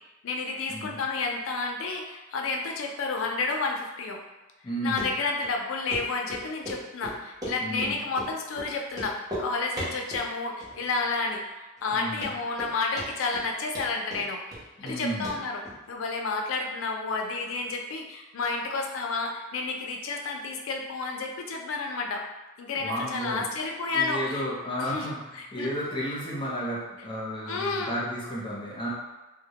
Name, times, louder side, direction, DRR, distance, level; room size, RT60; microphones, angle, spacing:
voice 1, 0.2-4.2 4.8-14.4 14.8-15.6 15.9-22.2 22.6-24.4 24.8-25.7 27.5-27.9, left 3 dB, 70° left, 2 dB, 0.4 m, -31 dB
voice 2, 4.6-5.1 7.6-8.0 11.9-12.3 14.8-15.3 22.8-23.5 23.9-28.9, equal, 25° left, -6 dB, 0.6 m, -33 dB
Run, 5.0-5.1 5.4-5.5 5.9-6.0 6.3-7.9 8.2-8.3 8.6-8.7 8.9-9.5 9.8-10.3 10.6-11.1 11.3-11.4 11.9-12.0 12.2-12.7 13.0-13.5 13.8-15.0 15.2-15.4 15.7-15.8, equal, 20° right, 0.6 m, -36 dB
2.1 x 2.0 x 2.8 m, 1.1 s
head